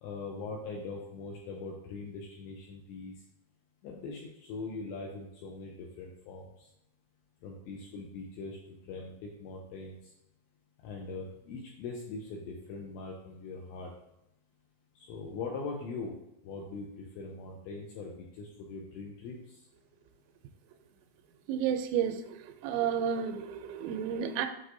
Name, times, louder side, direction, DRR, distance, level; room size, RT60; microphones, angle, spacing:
voice 1, 0.0-3.2 3.8-6.7 7.4-10.1 10.8-13.9 15.0-16.2 16.4-19.6, left 3 dB, 80° left, -1 dB, 2.6 m, -41 dB
voice 2, 21.5-22.2 22.6-24.5, right 8 dB, 85° right, 8 dB, 3.1 m, -31 dB
7.9 x 6.4 x 2.7 m, 0.85 s
omnidirectional pair, 5.8 m